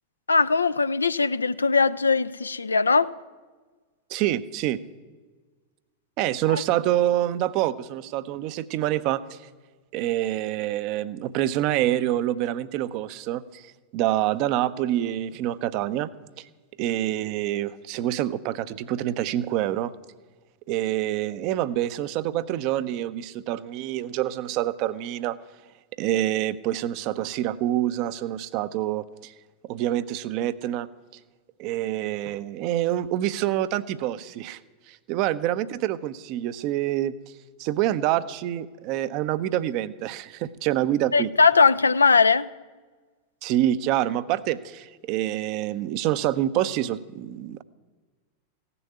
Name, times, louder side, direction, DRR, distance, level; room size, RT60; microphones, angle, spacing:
voice 1, 0.3-3.1 41.1-42.5, left 4 dB, 75° left, 0.4 m, -20 dB
voice 2, 4.1-4.8 6.2-9.4 9.9-16.1 16.4-16.5 16.8-19.9 20.7-25.4 26.0-29.3 29.6-30.9 31.6-34.6 34.9-37.1 37.6-41.3 43.4-47.6, right 13 dB, 45° right, 0.6 m, -26 dB
15.5 x 6.9 x 9.9 m
figure-of-eight pair, 90°, 0 cm